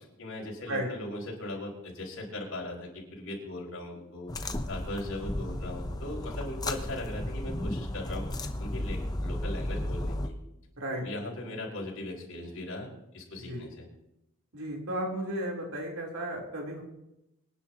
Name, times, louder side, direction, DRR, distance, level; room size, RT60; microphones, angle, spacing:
voice 1, 0.0-10.3 10.9-13.9, left 1 dB, 75° left, -3 dB, 5.4 m, -39 dB
sound 1, 4.3-10.3, left 1 dB, 20° left, 0.7 m, -34 dB
voice 2, 14.5-16.8, right 1 dB, 80° right, -1 dB, 3.6 m, -34 dB
25.5 x 11.0 x 3.0 m, 0.87 s
head